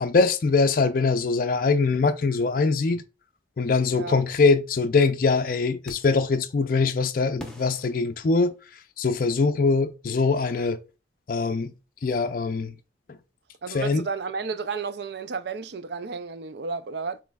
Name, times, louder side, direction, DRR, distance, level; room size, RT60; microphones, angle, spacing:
voice 1, 0.0-3.0 3.6-8.5 9.0-10.8 11.3-11.7 12.0-12.7 13.7-14.0, left 4 dB, 45° left, 0.4 m, -22 dB
voice 2, 3.9-4.2 13.6-17.2, right 5 dB, 65° right, 0.4 m, -32 dB
sound 1, 5.8-6.3 7.4-8.9, equal, 5° left, 0.8 m, -45 dB
7.3 x 3.2 x 2.3 m
head